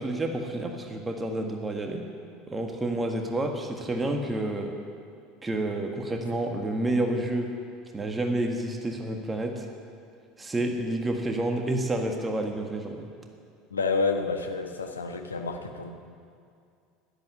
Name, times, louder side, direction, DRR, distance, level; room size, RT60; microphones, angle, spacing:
voice 1, 0.0-2.1 2.5-4.7 5.4-7.5 7.9-9.7 10.4-13.1, right 1 dB, 15° right, 3 dB, 1.7 m, -29 dB
voice 2, 13.7-15.9, left 4 dB, 75° left, 4 dB, 1.2 m, -29 dB
13.0 x 11.0 x 9.4 m, 2.4 s
figure-of-eight pair, 70°, 0 cm